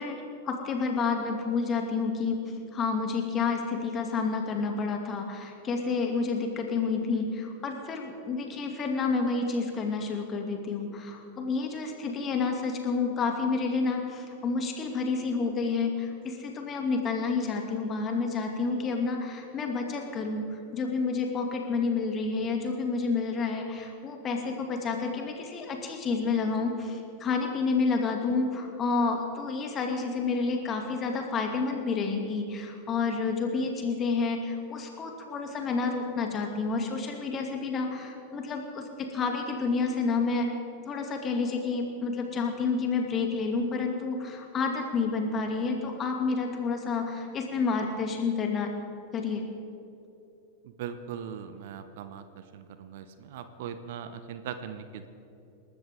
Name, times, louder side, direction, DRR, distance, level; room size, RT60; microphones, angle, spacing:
voice 1, 0.0-2.4 2.7-40.5 40.9-48.7 49.1-49.4, left 4 dB, 25° left, 3 dB, 2.6 m, -29 dB
voice 2, 50.8-52.2 52.5-55.1, right 8 dB, 55° right, 10 dB, 1.0 m, -39 dB
28.0 x 13.5 x 3.8 m, 2.8 s
figure-of-eight pair, 90°, 0 cm